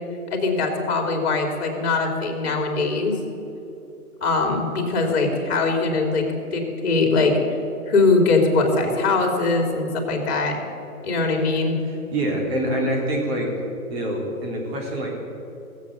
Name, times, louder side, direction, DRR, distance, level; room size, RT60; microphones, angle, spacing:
voice 1, 0.3-3.2 4.2-7.4 7.9-10.6 11.0-11.8, left 3 dB, 45° left, 3 dB, 3.1 m, -21 dB
voice 2, 11.8-13.5 13.9-15.1, right 1 dB, 40° right, -1 dB, 3.1 m, -25 dB
16.5 x 8.2 x 8.1 m, 2.9 s
hypercardioid pair, 155°, 46 cm